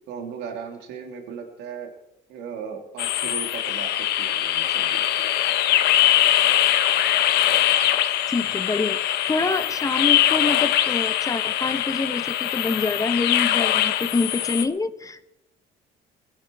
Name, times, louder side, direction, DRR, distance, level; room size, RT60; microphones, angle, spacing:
voice 1, 0.1-1.9 2.3-5.4, right 6 dB, 85° right, 3 dB, 3.0 m, -37 dB
sound 1, 3.0-14.6, left 12 dB, 80° left, 1.3 m, -22 dB
voice 2, 8.3-15.3, left 3 dB, 20° left, 12 dB, 0.9 m, -26 dB
21.0 x 11.5 x 4.7 m, 0.85 s
cardioid pair, 110°, 17 cm